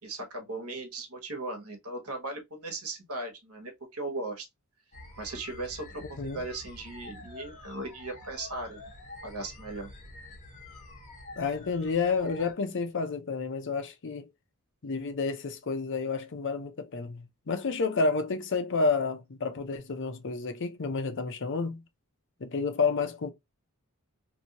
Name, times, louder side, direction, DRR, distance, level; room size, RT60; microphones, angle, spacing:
voice 1, 0.0-4.5 5.2-8.8 9.2-9.9, right 2 dB, 80° right, 1.3 m, -38 dB
sound 1, 4.9-12.5, left 2 dB, 35° left, 1.1 m, -47 dB
voice 2, 11.4-14.3 14.8-21.8 22.4-23.3, left 4 dB, 55° left, 0.6 m, -30 dB
2.9 x 2.6 x 2.9 m
head